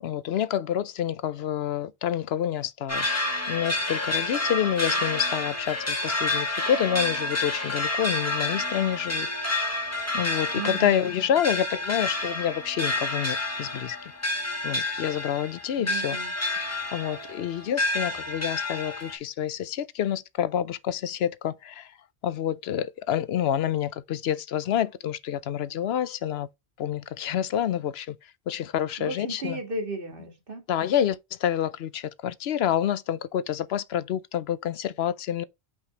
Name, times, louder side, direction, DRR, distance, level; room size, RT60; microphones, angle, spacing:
voice 1, 0.0-3.2 3.5-9.3 10.1-14.0 14.6-16.2 16.9-21.9 22.2-26.5 26.8-28.2 28.5-29.6 30.7-35.4, left 10 dB, 70° left, 0.8 m, -28 dB
sound 1, 2.9-19.2, left 2 dB, 15° left, 1.5 m, -29 dB
voice 2, 10.5-11.0 15.8-16.3 29.0-30.6, right 3 dB, 55° right, 2.1 m, -35 dB
5.8 x 4.9 x 4.0 m
omnidirectional pair, 1.1 m